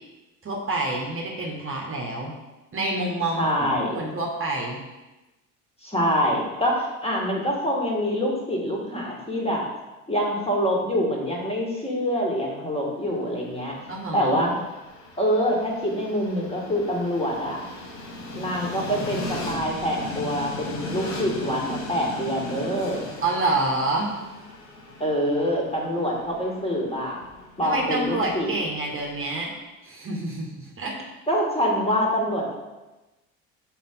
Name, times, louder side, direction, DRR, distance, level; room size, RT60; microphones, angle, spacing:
voice 1, 0.4-2.3 2.7-4.8 13.9-14.4 23.2-24.1 27.6-29.5 29.8-31.0, right 2 dB, 30° right, 0 dB, 1.1 m, -27 dB
voice 2, 3.3-4.0 5.8-9.6 10.1-13.7 14.1-14.5 15.2-17.6 18.3-23.1 25.0-27.2 27.6-28.5 31.3-32.6, equal, 15° left, -2 dB, 1.9 m, -25 dB
Train, 13.3-29.4, left 2 dB, 70° left, 1.3 m, -38 dB
5.6 x 4.5 x 3.8 m, 1.1 s
figure-of-eight pair, 60°, 43 cm